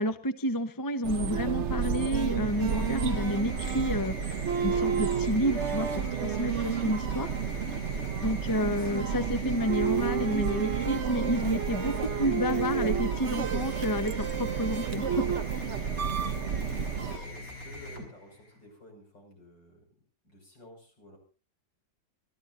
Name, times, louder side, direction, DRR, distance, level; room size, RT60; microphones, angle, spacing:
voice 1, 0.0-7.3 8.2-15.7, equal, 20° left, 10 dB, 0.5 m, -30 dB
sound 1, 1.0-17.2, right 7 dB, 50° right, 0.9 m, -30 dB
sound 2, 2.1-18.6, left 1 dB, 45° left, 4.9 m, -42 dB
voice 2, 7.8-8.1 15.8-19.9 20.2-21.2, left 1 dB, 65° left, 2 dB, 6.7 m, -53 dB
26.5 x 13.5 x 2.6 m, 0.35 s
omnidirectional pair, 2.1 m